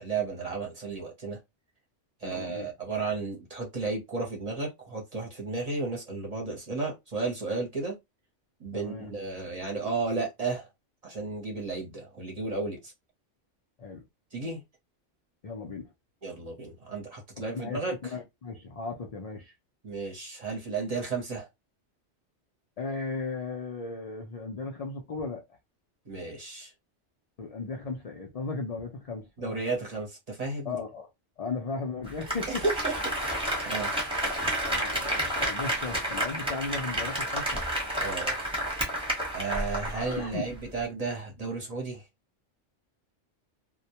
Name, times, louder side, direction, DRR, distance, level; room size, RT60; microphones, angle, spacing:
voice 1, 0.0-1.4 2.2-7.9 8.6-10.7 11.0-12.9 14.3-14.6 16.2-18.1 19.8-21.5 26.1-26.7 29.4-30.8 32.6-32.9 33.6-33.9 38.0-38.3 39.3-42.0, right 3 dB, 40° right, 0.7 m, -33 dB
voice 2, 2.2-2.7 8.7-9.1 13.8-14.0 15.4-15.9 17.5-19.5 22.8-25.4 27.4-29.6 30.6-31.1 31.4-32.6 34.7-37.5 39.9-40.5, left 4 dB, 70° left, 0.3 m, -36 dB
Applause, 32.1-40.3 40.6-40.7, right 1 dB, 5° right, 0.8 m, -30 dB
2.2 x 2.1 x 2.8 m
omnidirectional pair, 1.2 m